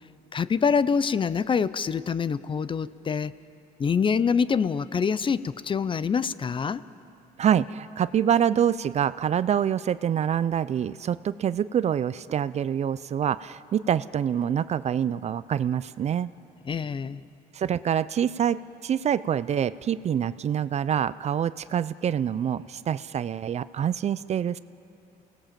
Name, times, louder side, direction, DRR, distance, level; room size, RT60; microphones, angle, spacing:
voice 1, 0.3-3.3 3.8-6.8 16.7-17.2, left 6 dB, 30° left, 16 dB, 0.6 m, -25 dB
voice 2, 7.4-16.3 17.5-24.6, right 9 dB, 40° right, 16 dB, 0.5 m, -26 dB
28.5 x 18.5 x 7.5 m, 2.7 s
cardioid pair, 110°, 17 cm